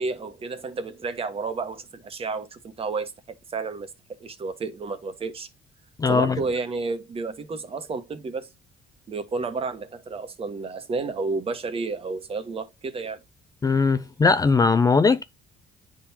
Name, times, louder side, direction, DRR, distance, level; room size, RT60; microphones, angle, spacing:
voice 1, 0.0-3.9 4.2-5.5 6.1-8.5 9.1-13.2, right 4 dB, 35° right, 1.2 m, -31 dB
voice 2, 6.0-6.4 13.6-15.2, left 4 dB, 20° left, 0.5 m, -19 dB
10.0 x 3.8 x 2.8 m
cardioid pair, 110°, 17 cm